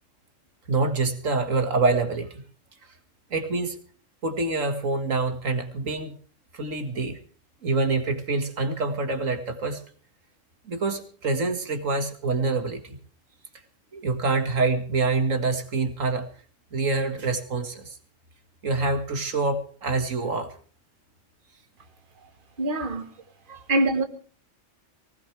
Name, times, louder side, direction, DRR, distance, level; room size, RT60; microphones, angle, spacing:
voice 1, 0.7-2.4 3.3-3.8 4.2-6.1 6.5-7.2 7.6-9.8 10.7-13.0 13.9-16.3 16.7-18.0 18.6-20.5 23.5-23.6, right 3 dB, 80° right, 2.3 m, -26 dB
voice 2, 22.6-23.1 23.7-24.0, right 1 dB, 40° right, 1.7 m, -23 dB
20.0 x 18.5 x 3.3 m
omnidirectional pair, 1.3 m